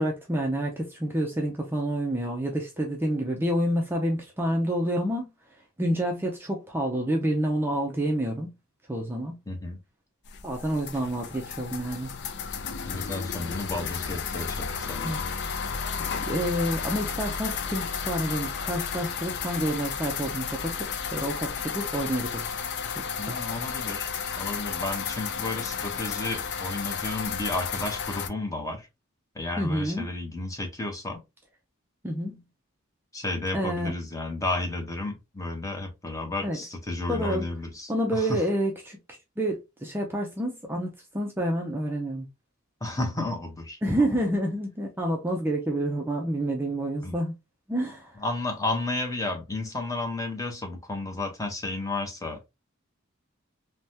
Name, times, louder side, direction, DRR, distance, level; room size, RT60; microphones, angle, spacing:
voice 1, 0.0-5.3 5.8-8.5 8.9-9.4 10.4-12.1 15.0-15.2 16.0-20.8 21.1-22.5 23.0-23.4 29.6-30.1 32.0-32.4 33.5-34.0 36.4-36.6 37.1-37.5 37.9-39.0 39.4-42.3 43.8-47.3 47.7-48.2, right 1 dB, 10° right, 0.4 m, -28 dB
voice 2, 9.5-9.8 12.9-15.2 23.2-24.1 24.4-28.9 29.3-31.2 33.1-38.4 42.8-44.2 47.0-47.2 48.2-52.5, left 2 dB, 15° left, 0.8 m, -32 dB
sound 1, 10.3-28.3, left 6 dB, 55° left, 0.4 m, -33 dB
3.3 x 2.1 x 2.6 m
head